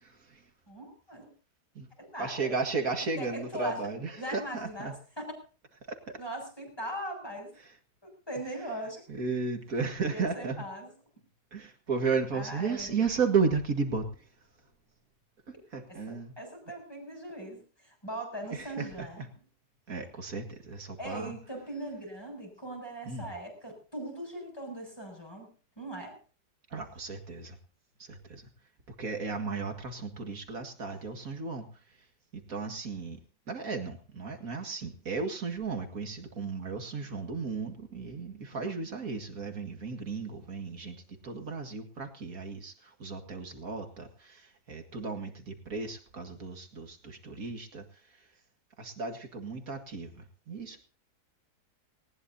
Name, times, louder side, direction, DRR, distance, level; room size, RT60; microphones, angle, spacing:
voice 1, 0.1-0.5 1.7-1.9 2.2-4.9 6.1-6.2 9.1-10.6 11.5-14.3 15.5-16.3 18.5-19.1 19.9-21.3 23.0-23.3 26.7-27.6 28.0-28.5 29.0-31.7 32.3-33.2 33.5-48.3 48.8-50.8, right 4 dB, 55° right, 4 dB, 2.3 m, -34 dB
voice 2, 0.7-1.3 2.0-2.5 3.2-3.8 4.2-5.3 6.2-7.5 8.0-9.0 10.1-10.9 12.3-13.0 15.9-19.2 21.0-25.5 25.8-26.2, right 1 dB, 15° left, 1 dB, 7.5 m, -40 dB
19.5 x 19.0 x 2.8 m, 0.39 s
omnidirectional pair, 1.8 m